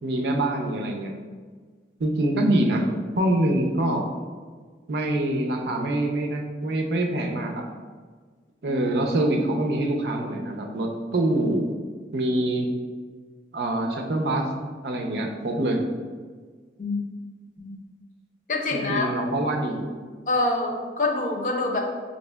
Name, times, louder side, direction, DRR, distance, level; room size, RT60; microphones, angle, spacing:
voice 1, 0.0-1.1 2.0-2.9 3.2-4.1 4.9-7.6 8.6-11.7 12.1-12.7 13.5-14.5 14.8-15.8 18.7-19.9, right 1 dB, 70° right, 2 dB, 0.5 m, -25 dB
voice 2, 18.5-19.1 20.3-21.8, left 2 dB, 45° left, 1 dB, 0.5 m, -25 dB
5.2 x 2.7 x 2.2 m, 1.5 s
head